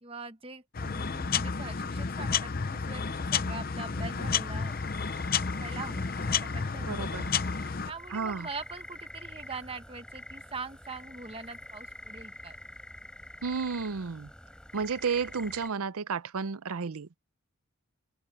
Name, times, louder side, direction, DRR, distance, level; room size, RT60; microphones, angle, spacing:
voice 1, 0.0-4.7 5.6-12.6, right 3 dB, 25° right, 1.2 m, -43 dB
sound 1, 0.7-7.9, left 5 dB, 40° left, 0.7 m, -31 dB
sound 2, 3.9-15.7, left 1 dB, 5° left, 6.1 m, -46 dB
voice 2, 6.9-7.2 8.1-8.5 13.4-14.3 14.7-17.2, right 5 dB, 80° right, 0.6 m, -32 dB
open air
head